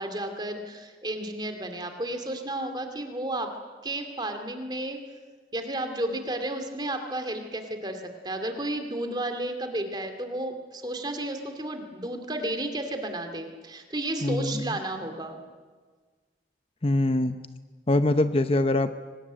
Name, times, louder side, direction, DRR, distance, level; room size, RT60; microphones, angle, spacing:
voice 1, 0.0-3.5 3.8-5.0 5.5-15.4, right 1 dB, 25° right, 7 dB, 2.5 m, -32 dB
voice 2, 14.2-14.6 16.8-17.4 17.9-18.9, left 2 dB, 35° left, 10 dB, 0.7 m, -23 dB
24.0 x 19.5 x 9.2 m, 1.5 s
head